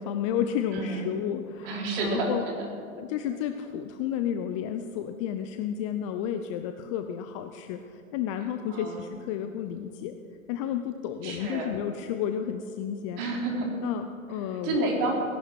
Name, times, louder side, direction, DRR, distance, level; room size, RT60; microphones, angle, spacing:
voice 1, 0.0-2.4 3.0-10.2 10.5-13.2 13.8-14.9, left 9 dB, 25° left, 8 dB, 0.5 m, -32 dB
voice 2, 0.7-1.0 1.6-2.3 8.7-9.1 11.2-11.7 13.2-13.8 14.6-15.2, right 3 dB, 40° right, -1 dB, 3.9 m, -29 dB
18.0 x 11.5 x 6.2 m, 2.5 s
figure-of-eight pair, 105°, 42 cm